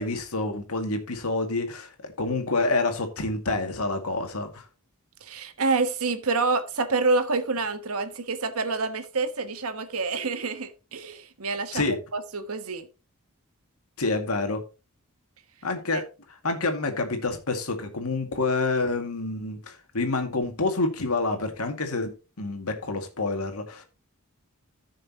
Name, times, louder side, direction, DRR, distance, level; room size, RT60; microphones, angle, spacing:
voice 1, 0.0-4.6 11.7-12.0 14.0-14.6 15.6-23.8, left 3 dB, 85° left, 2.2 m, -28 dB
voice 2, 5.2-11.8 12.1-12.9 15.9-16.0, right 3 dB, 75° right, 1.3 m, -27 dB
15.0 x 6.5 x 2.9 m
head